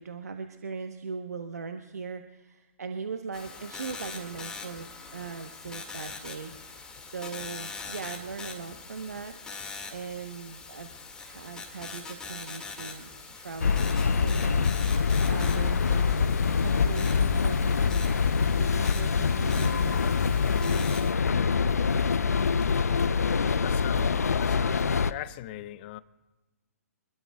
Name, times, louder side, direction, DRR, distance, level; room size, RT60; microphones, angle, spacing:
voice 1, 0.0-9.3 9.9-10.9 11.2-18.1 18.6-20.0 20.6-20.9 21.3-21.4, right 5 dB, 75° right, 1.0 m, -40 dB
sound 1, 3.3-21.1, left 4 dB, 10° left, 2.0 m, -42 dB
sound 2, 13.6-25.1, left 5 dB, 80° left, 0.6 m, -25 dB
voice 2, 23.4-26.0, left 14 dB, 40° left, 0.7 m, -41 dB
27.0 x 21.0 x 2.3 m
figure-of-eight pair, 125°, 8 cm